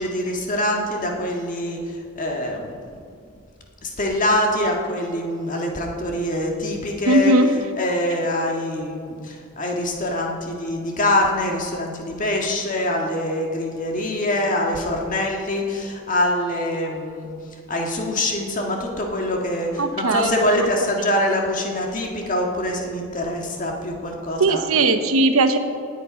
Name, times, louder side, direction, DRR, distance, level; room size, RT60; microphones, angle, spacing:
voice 1, 0.0-2.8 3.8-7.3 7.8-17.3 17.7-24.6, left 1 dB, 35° left, 0 dB, 1.8 m, -24 dB
voice 2, 7.1-7.5 19.8-20.7 24.4-25.6, right 2 dB, 80° right, 9 dB, 1.0 m, -18 dB
19.5 x 8.3 x 5.2 m, 2.3 s
head